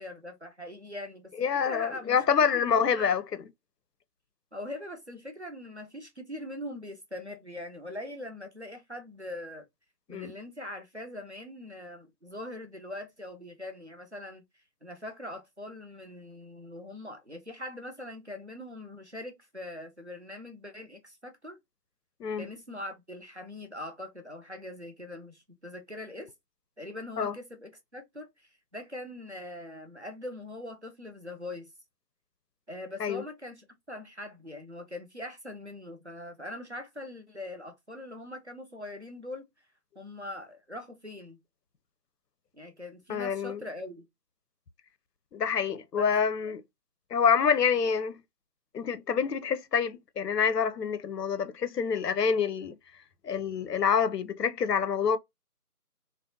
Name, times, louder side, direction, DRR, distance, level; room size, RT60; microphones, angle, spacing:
voice 1, 0.0-1.3 1.6-3.1 4.5-9.6 10.1-21.6 22.4-26.3 26.8-31.7 32.7-39.5 40.0-41.4 42.5-44.0 46.0-46.1, left 1 dB, 45° right, 0.6 m, -42 dB
voice 2, 1.4-3.2 10.1-10.3 22.2-22.4 27.2-27.3 33.0-33.2 43.1-43.6 45.3-46.6 47.1-48.2 48.7-52.7 53.2-55.2, left 6 dB, 85° left, 0.6 m, -27 dB
2.6 x 2.0 x 2.6 m
figure-of-eight pair, 175°, 47 cm